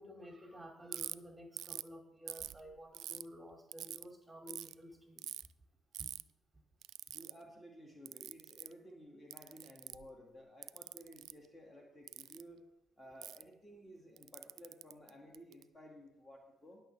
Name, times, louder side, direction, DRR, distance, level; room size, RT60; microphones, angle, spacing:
voice 1, 0.0-5.2 6.0-6.1, equal, 5° right, 2 dB, 2.6 m, -52 dB
Ratchet pawl, 0.9-1.1 1.6-1.9 2.3-3.2 3.7-4.0 4.5-4.7 5.2-5.5 5.9-6.2 6.8-7.3 8.1-8.7 9.3-10.1 10.6-11.3 12.1-12.4 13.2-13.4 14.2-15.6, right 11 dB, 60° right, 0.3 m, -44 dB
voice 2, 7.1-12.6 13.0-16.8, equal, 20° left, 0 dB, 2.2 m, -55 dB
19.0 x 6.7 x 3.5 m, 0.83 s
hypercardioid pair, 50°, 0 cm